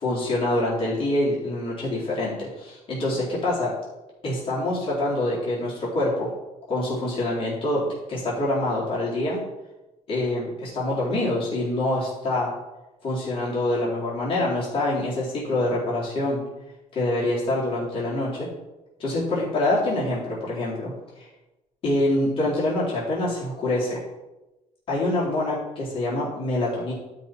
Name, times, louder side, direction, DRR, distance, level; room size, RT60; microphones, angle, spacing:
voice 1, 0.0-3.7 4.2-6.3 6.7-9.4 10.1-12.5 13.0-16.4 16.9-18.5 19.0-21.3 21.8-24.0 24.9-26.9, left 1 dB, 45° left, -7 dB, 3.9 m, -25 dB
12.0 x 5.6 x 4.5 m, 1.0 s
cardioid pair, 150°, 13 cm